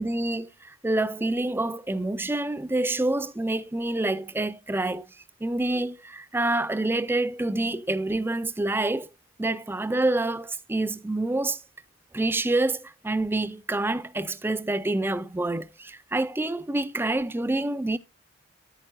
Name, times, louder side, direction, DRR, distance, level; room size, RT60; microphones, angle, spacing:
voice 1, 0.0-5.2 5.4-9.1 9.4-11.6 12.1-18.0, right 2 dB, 10° right, 0.4 m, -27 dB
10.5 x 8.9 x 2.2 m
head